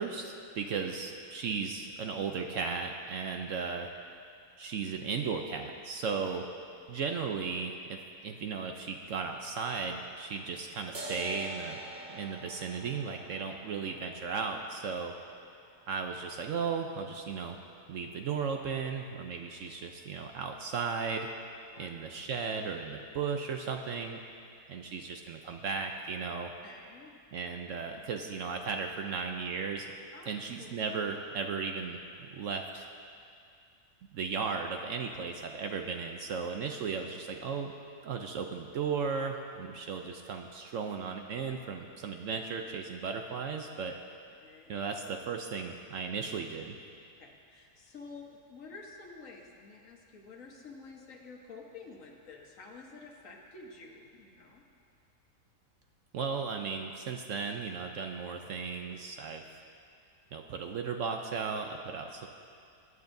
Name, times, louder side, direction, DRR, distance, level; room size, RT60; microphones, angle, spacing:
voice 1, 0.0-3.9 4.6-6.5 6.9-11.8 12.1-15.1 15.9-17.6 17.9-21.3 21.8-24.2 24.7-26.5 27.3-29.9 30.3-32.9 34.1-37.7 38.0-43.9 44.7-46.8 56.1-59.4 60.3-62.3, right 5 dB, 65° right, 4 dB, 0.9 m, -35 dB
sound 1, 10.9-17.9, right 1 dB, 40° right, 0.8 m, -47 dB
voice 2, 26.6-27.1 30.1-30.3 30.6-30.7 44.4-44.7 47.2-54.7, left 4 dB, 60° left, 0 dB, 1.5 m, -50 dB
20.0 x 9.6 x 2.7 m, 2.4 s
omnidirectional pair, 1.6 m